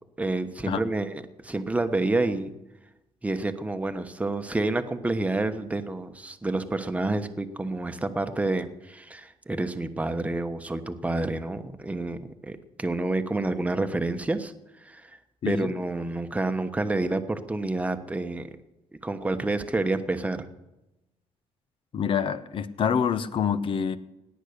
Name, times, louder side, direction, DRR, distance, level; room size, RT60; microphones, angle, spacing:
voice 1, 0.2-2.5 3.2-14.5 14.8-15.2 15.4-18.5 19.0-20.5, right 2 dB, 10° right, 8 dB, 1.1 m, -29 dB
voice 2, 21.9-24.0, left 7 dB, 50° left, 14 dB, 0.9 m, -26 dB
17.5 x 10.0 x 6.6 m, 0.97 s
cardioid pair, 110°, 12 cm